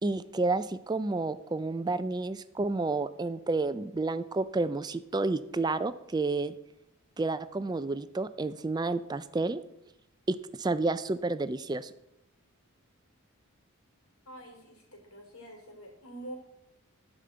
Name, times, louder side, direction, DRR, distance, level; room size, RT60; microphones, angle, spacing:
voice 1, 0.0-6.5 7.2-9.6 10.3-11.9, right 3 dB, 20° right, 13 dB, 0.3 m, -30 dB
voice 2, 14.3-16.4, right 1 dB, 80° left, 2 dB, 3.2 m, -46 dB
12.5 x 5.1 x 7.8 m, 0.88 s
head